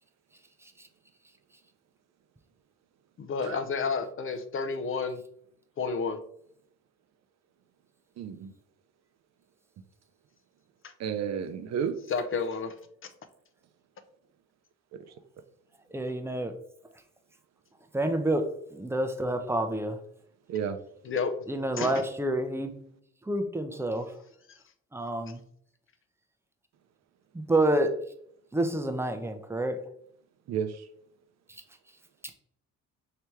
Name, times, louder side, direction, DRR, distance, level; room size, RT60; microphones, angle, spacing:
voice 1, 3.2-5.2 5.8-6.2 10.8-10.9 12.1-12.7 21.0-21.3 21.8-21.9, left 5 dB, 45° left, 0.6 m, -30 dB
voice 2, 8.2-8.5 11.0-12.0 14.9-15.0 20.5-20.8 30.5-30.7, right 8 dB, 60° right, 0.5 m, -31 dB
voice 3, 15.9-16.5 17.9-20.0 21.5-22.7 23.2-24.2 24.9-25.4 27.3-28.0 28.5-29.8 31.5-31.6 32.2-32.3, right 1 dB, 10° right, 0.5 m, -28 dB
3.3 x 2.8 x 4.6 m
cardioid pair, 90°, 30 cm